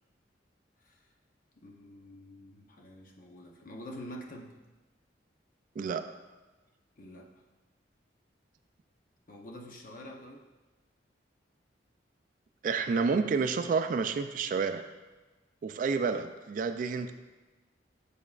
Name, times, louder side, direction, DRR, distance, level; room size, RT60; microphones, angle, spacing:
voice 1, 1.6-4.5 7.0-7.4 9.3-10.4, equal, 50° left, 1 dB, 0.7 m, -47 dB
voice 2, 12.6-14.8 15.6-17.1, right 5 dB, 45° right, 9 dB, 0.3 m, -29 dB
7.1 x 6.5 x 2.4 m, 1.2 s
head